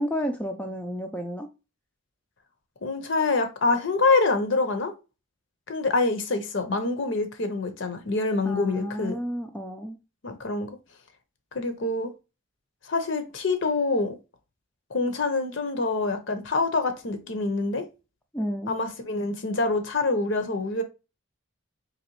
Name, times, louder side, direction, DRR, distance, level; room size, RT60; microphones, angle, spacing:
voice 1, 0.0-1.5 8.4-10.0 18.3-18.8, equal, 5° left, 0.3 m, -31 dB
voice 2, 2.8-4.9 5.7-9.2 10.2-10.7 11.5-12.1 12.9-14.2 14.9-17.8 18.7-20.8, left 3 dB, 60° left, 0.7 m, -26 dB
4.0 x 3.0 x 3.0 m
head